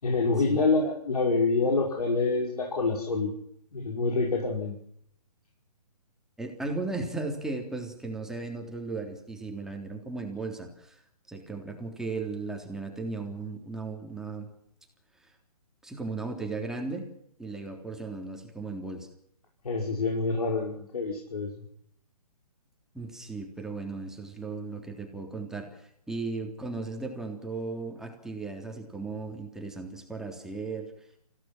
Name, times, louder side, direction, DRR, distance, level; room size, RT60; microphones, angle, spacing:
voice 1, 0.0-3.3 3.7-4.8 19.6-21.5, left 3 dB, 70° left, 0 dB, 5.6 m, -26 dB
voice 2, 6.4-11.0 11.3-14.5 15.8-17.0 17.4-19.1 22.9-30.9, right 3 dB, ahead, 2 dB, 3.4 m, -36 dB
27.5 x 16.5 x 6.0 m, 0.70 s
hypercardioid pair, 145°, 20 cm